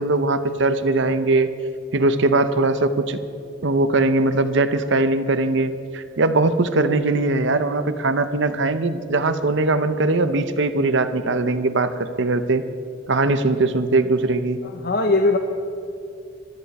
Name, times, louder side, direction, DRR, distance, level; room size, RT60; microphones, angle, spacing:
voice 1, 0.0-1.5 1.9-3.2 3.6-12.6 13.1-14.6, right 2 dB, 65° right, 10 dB, 0.8 m, -20 dB
voice 2, 14.6-15.4, left 2 dB, 50° left, 4 dB, 0.9 m, -20 dB
22.0 x 13.0 x 4.2 m, 2.6 s
head